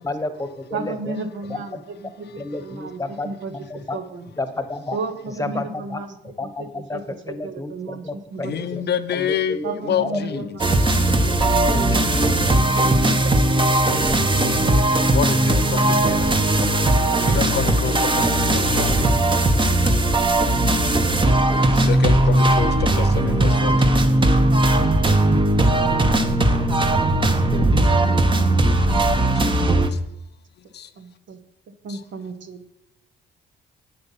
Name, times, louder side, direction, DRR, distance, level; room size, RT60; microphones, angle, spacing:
voice 1, 0.0-1.2 1.5-1.8 2.4-4.0 4.4-5.0 5.3-6.0 6.4-8.8 9.1-10.5 11.0-11.4 11.7-12.3, left 2 dB, 15° left, 10 dB, 1.1 m, -31 dB
voice 2, 0.7-3.5 3.9-4.3 4.9-9.0 9.6-14.6 29.9-30.0 31.0-31.4 31.8-32.6, right 3 dB, 70° right, 9 dB, 1.0 m, -34 dB
voice 3, 8.4-9.6 9.9-10.4 10.7-11.1 15.1-16.3 17.2-19.1 21.7-24.0 29.3-29.5 29.9-30.0 30.7-30.9 31.9-32.0, left 9 dB, 55° left, 12 dB, 0.6 m, -28 dB
sound 1, 10.6-29.9, right 1 dB, 25° right, 0.9 m, -18 dB
8.7 x 7.7 x 5.8 m, 0.81 s
cardioid pair, 90°, 20 cm